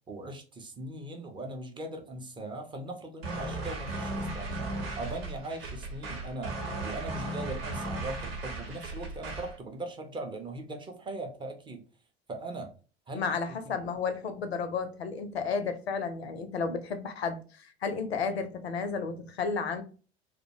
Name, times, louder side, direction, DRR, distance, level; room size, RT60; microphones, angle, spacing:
voice 1, 0.1-4.6 4.9-11.8 12.3-12.7 13.1-13.7, right 2 dB, 15° right, 0.4 m, -40 dB
sound 1, 3.2-9.6, right 2 dB, 70° right, 0.8 m, -36 dB
voice 2, 13.1-19.8, left 5 dB, 75° left, 0.5 m, -32 dB
2.4 x 2.1 x 2.7 m
figure-of-eight pair, 70°, 31 cm